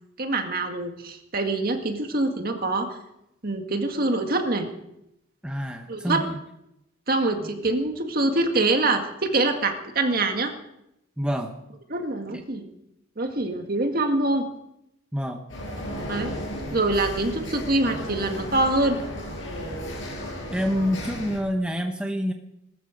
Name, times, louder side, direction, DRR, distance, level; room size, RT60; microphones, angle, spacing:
voice 1, 0.2-2.9 3.4-4.7 5.9-6.2 7.1-10.5 11.9-12.7 13.2-14.5 16.1-16.3 16.7-19.0, right 2 dB, 45° right, 5 dB, 1.9 m, -24 dB
voice 2, 5.4-6.4 7.4-7.5 11.2-11.5 15.1-15.4 20.5-22.3, equal, 5° right, 4 dB, 0.9 m, -27 dB
sound 1, 15.5-21.4, equal, 70° left, 6.3 m, -34 dB
19.5 x 13.5 x 5.2 m, 0.81 s
head